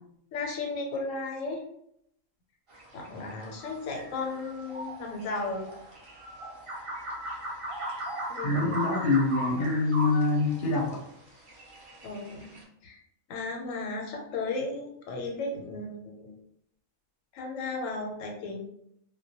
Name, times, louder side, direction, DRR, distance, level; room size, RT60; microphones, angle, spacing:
voice 1, 0.3-1.6 2.9-5.7 8.3-8.7 12.0-13.0 13.3-16.3 17.3-18.6, left 3 dB, 85° left, 1 dB, 1.0 m, -35 dB
sound 1, 2.7-12.6, right 1 dB, 55° right, 0.3 m, -39 dB
voice 2, 8.4-11.0, left 3 dB, 55° left, 0 dB, 0.6 m, -25 dB
2.2 x 2.1 x 2.7 m, 0.74 s
omnidirectional pair, 1.3 m